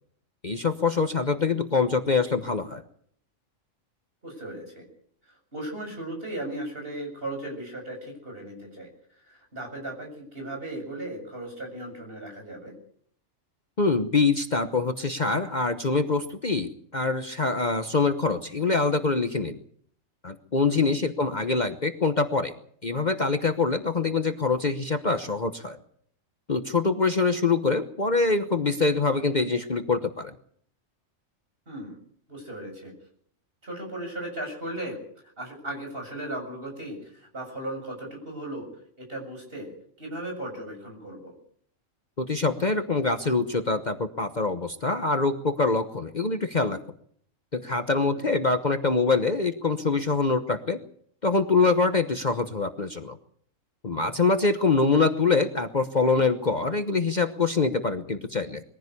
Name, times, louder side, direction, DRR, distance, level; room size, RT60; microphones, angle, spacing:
voice 1, 0.4-2.8 13.8-19.6 20.2-22.5 22.8-25.8 26.5-30.3 42.2-46.8 47.5-50.8 51.2-53.2 53.8-58.6, left 4 dB, 35° left, 8 dB, 1.1 m, -24 dB
voice 2, 4.2-4.9 5.5-8.9 9.3-12.7 20.7-20.9 31.7-32.0 32.3-32.9 33.6-35.0 35.4-38.7 39.0-39.7 40.0-41.3 48.1-48.3, right 1 dB, 45° right, 2 dB, 7.7 m, -36 dB
22.0 x 15.5 x 8.4 m, 0.62 s
omnidirectional pair, 1.3 m